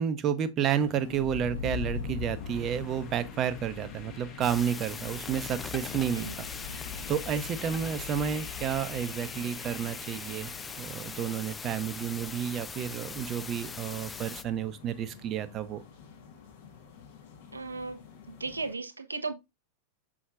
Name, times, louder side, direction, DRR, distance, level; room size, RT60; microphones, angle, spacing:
voice 1, 0.0-6.8 7.1-15.8, right 8 dB, 30° right, 0.7 m, -31 dB
sound 1, 0.7-18.7, left 6 dB, 55° left, 1.5 m, -49 dB
sound 2, 1.1-13.0, left 7 dB, 35° left, 1.4 m, -42 dB
sound 3, 4.4-14.4, left 5 dB, 15° left, 0.4 m, -41 dB
voice 2, 17.5-18.0 18.3-19.3, right 3 dB, 80° right, 0.7 m, -35 dB
6.2 x 6.1 x 2.5 m
figure-of-eight pair, 90°, 0 cm